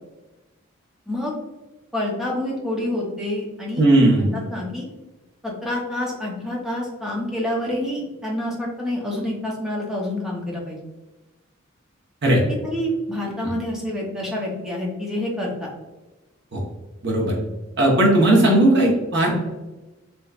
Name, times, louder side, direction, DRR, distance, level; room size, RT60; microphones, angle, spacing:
voice 1, 1.9-3.9 4.2-4.9 5.4-10.8 12.6-15.7, left 1 dB, ahead, -4 dB, 0.7 m, -27 dB
voice 2, 3.8-4.2 12.2-12.4 13.4-13.5 16.5-16.6 17.0-17.3 17.8-19.3, right 1 dB, 50° right, -2 dB, 0.9 m, -17 dB
3.4 x 3.0 x 2.4 m, 1.1 s
head